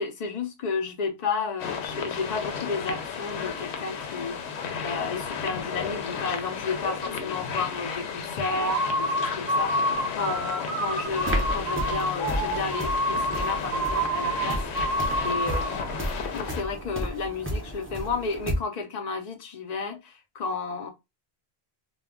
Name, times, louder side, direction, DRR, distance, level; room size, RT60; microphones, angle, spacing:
voice 1, 0.0-15.8 16.3-20.9, left 4 dB, 50° left, 0.6 m, -32 dB
sound 1, 1.6-16.6, left 6 dB, 90° left, 0.8 m, -34 dB
sound 2, 8.6-15.8, right 1 dB, 50° right, 0.7 m, -28 dB
sound 3, 11.0-18.5, equal, 15° right, 0.5 m, -33 dB
2.2 x 2.2 x 3.5 m
omnidirectional pair, 1.1 m